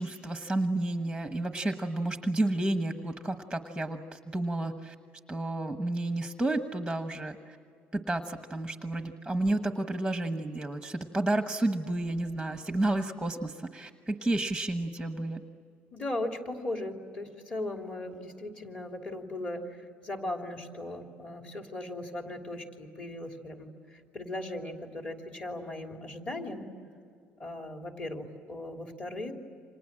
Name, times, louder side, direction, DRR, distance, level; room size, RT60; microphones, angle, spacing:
voice 1, 0.0-4.9 5.3-7.6 7.9-15.4, right 2 dB, ahead, 7 dB, 1.2 m, -31 dB
voice 2, 15.9-26.7 27.4-29.3, left 1 dB, 30° left, 3 dB, 3.2 m, -38 dB
29.5 x 26.5 x 7.6 m, 2.4 s
cardioid pair, 150°, 5 cm